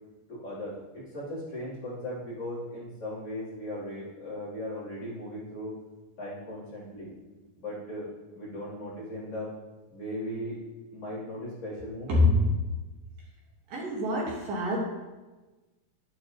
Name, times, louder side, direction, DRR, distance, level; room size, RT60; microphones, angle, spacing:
voice 1, 0.3-5.7 6.2-7.1 7.6-8.1 8.3-9.5 9.9-10.6 10.9-12.2, left 1 dB, 40° left, -8 dB, 4.0 m, -37 dB
voice 2, 12.1-12.4 13.7-14.8, left 2 dB, 65° right, -4 dB, 2.9 m, -25 dB
10.5 x 9.2 x 3.0 m, 1.2 s
omnidirectional pair, 4.5 m